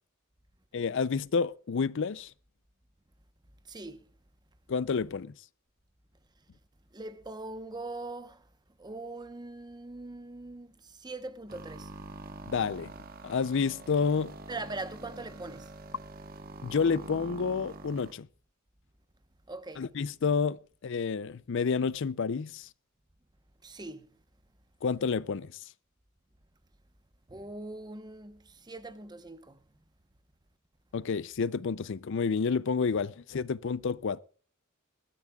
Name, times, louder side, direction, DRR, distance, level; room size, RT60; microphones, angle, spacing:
voice 1, 0.7-2.3 4.7-5.3 12.5-12.9 13.2-14.3 16.6-18.3 19.8-22.7 24.8-25.5 30.9-34.2, left 5 dB, 60° left, 0.5 m, -29 dB
voice 2, 3.7-4.0 6.9-8.4 8.8-10.7 11.0-11.9 14.5-15.7 19.5-19.9 23.6-24.1 27.3-29.6, right 2 dB, 20° right, 0.9 m, -41 dB
sound 1, 11.5-18.1, right 2 dB, 45° right, 1.3 m, -45 dB
20.5 x 13.5 x 2.3 m
head